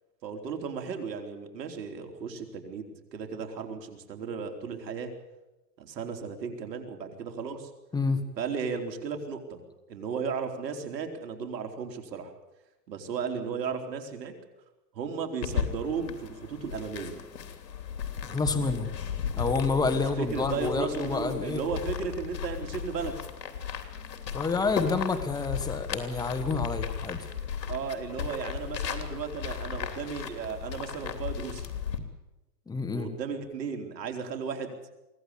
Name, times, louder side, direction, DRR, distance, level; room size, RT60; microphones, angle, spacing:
voice 1, 0.2-5.1 5.8-7.7 8.4-9.6 9.9-12.3 12.9-14.3 14.9-17.2 19.8-23.2 27.7-31.7 32.9-34.8, right 6 dB, 75° right, 5 dB, 4.2 m, -35 dB
sound 1, 15.4-32.0, left 7 dB, 80° left, 3.2 m, -36 dB
voice 2, 18.3-18.9 19.4-21.6 24.3-27.2 32.7-33.1, left 4 dB, 10° left, 9 dB, 1.6 m, -28 dB
23.5 x 16.5 x 8.4 m, 1.0 s
hypercardioid pair, 140°, 50 cm